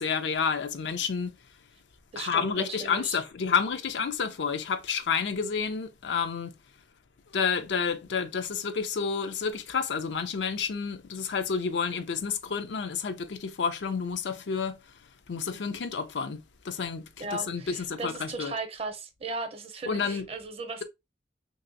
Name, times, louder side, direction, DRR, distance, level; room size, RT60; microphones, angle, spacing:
voice 1, 0.0-1.4 2.2-6.5 7.3-14.8 15.3-18.5 19.9-20.3, left 6 dB, 85° left, 0.5 m, -30 dB
voice 2, 2.1-3.2 17.2-20.8, right 3 dB, 35° right, 0.6 m, -37 dB
3.3 x 2.7 x 2.6 m
head